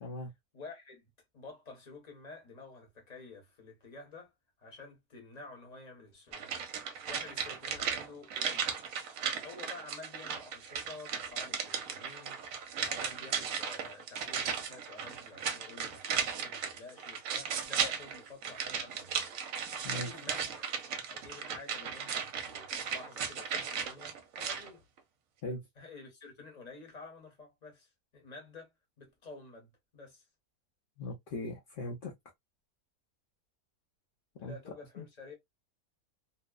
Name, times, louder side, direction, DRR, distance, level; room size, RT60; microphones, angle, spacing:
voice 1, 0.0-0.3 19.8-20.1 25.4-25.6 31.0-32.1 34.4-34.6 35.0-35.1, left 2 dB, 60° left, 0.5 m, -39 dB
voice 2, 0.5-1.1 1.3-4.3 4.6-6.7 7.1-8.9 9.3-12.4 12.8-19.3 19.9-20.8 21.1-24.8 25.8-28.7 29.0-30.2 34.4-35.4, left 3 dB, 35° left, 0.8 m, -50 dB
sound 1, 6.3-24.7 25.0-25.1, right 7 dB, 70° right, 1.0 m, -36 dB
2.8 x 2.0 x 2.2 m
omnidirectional pair, 1.6 m